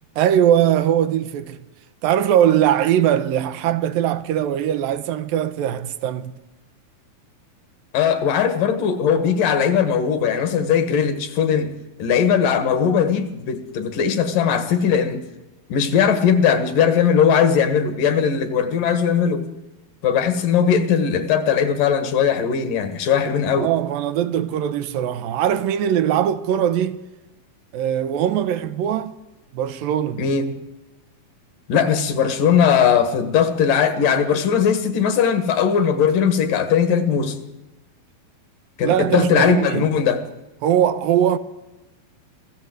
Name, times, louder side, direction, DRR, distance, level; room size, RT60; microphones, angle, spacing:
voice 1, 0.2-1.6 2.0-6.4 23.6-27.0 27.7-29.2 29.5-30.2 38.8-39.9 40.6-41.4, right 10 dB, 80° right, 2.7 m, -20 dB
voice 2, 7.9-15.2 15.7-19.5 20.0-23.7 30.2-30.6 31.7-37.4 38.8-40.2, left 7 dB, 65° left, 3.4 m, -19 dB
25.0 x 16.0 x 7.9 m
omnidirectional pair, 4.1 m